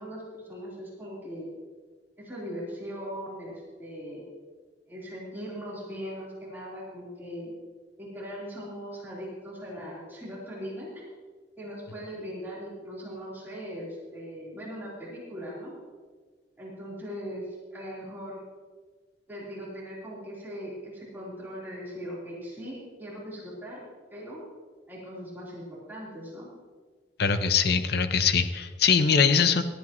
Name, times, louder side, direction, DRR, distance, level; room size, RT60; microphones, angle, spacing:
voice 1, 0.0-1.5 2.2-4.2 4.9-7.5 8.0-11.0 11.6-15.7 16.6-17.4 17.7-18.4 19.3-23.8 24.1-24.4 24.9-26.5, equal, 10° right, -7 dB, 3.7 m, -39 dB
voice 2, 27.2-29.6, left 6 dB, 60° left, 10 dB, 0.7 m, -22 dB
18.5 x 12.0 x 3.1 m, 1.5 s
head